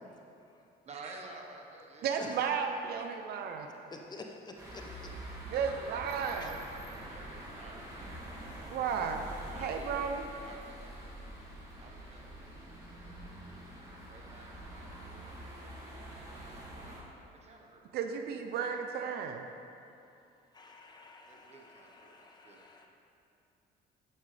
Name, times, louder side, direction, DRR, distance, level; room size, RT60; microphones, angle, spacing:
voice 1, 0.8-2.4 5.5-8.4 9.5-9.9 10.4-11.1 11.8-13.4 14.1-17.1 17.4-18.2 21.3-22.6, right 3 dB, 40° right, 1 dB, 1.3 m, -53 dB
voice 2, 2.0-3.7 5.5-6.5 8.7-9.2 9.5-10.2 17.9-19.4, right 6 dB, 70° right, 5 dB, 0.7 m, -33 dB
voice 3, 3.9-4.8 6.4-6.5 20.5-22.9, left 3 dB, 25° left, 2 dB, 0.9 m, -49 dB
sound 1, 4.6-17.0, right 1 dB, 20° right, 2.0 m, -46 dB
10.5 x 8.6 x 3.4 m, 2.7 s
cardioid pair, 110°, 17 cm